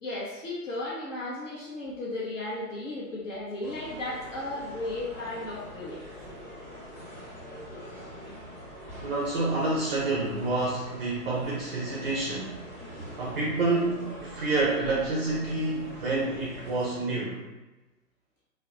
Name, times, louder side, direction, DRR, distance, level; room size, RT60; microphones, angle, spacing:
voice 1, 0.0-6.0, left 2 dB, 55° left, -6 dB, 0.7 m, -35 dB
sound 1, 3.6-16.9, equal, 10° left, 0.8 m, -44 dB
voice 2, 9.0-12.6 13.2-17.4, right 2 dB, 40° right, -4 dB, 0.4 m, -28 dB
2.4 x 2.0 x 2.7 m, 1.1 s
figure-of-eight pair, 130°, 47 cm